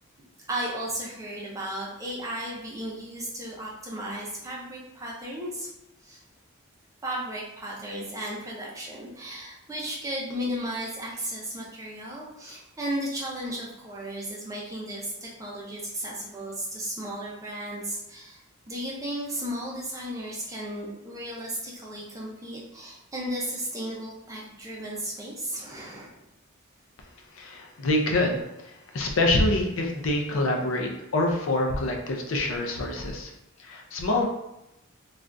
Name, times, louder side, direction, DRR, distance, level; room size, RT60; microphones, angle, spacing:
voice 1, 0.5-5.7 6.0-6.2 7.0-26.2, right 1 dB, 15° right, -4 dB, 0.5 m, -35 dB
voice 2, 27.4-33.3 33.6-34.3, left 2 dB, 70° left, 2 dB, 0.5 m, -26 dB
3.2 x 2.4 x 2.5 m, 0.90 s
head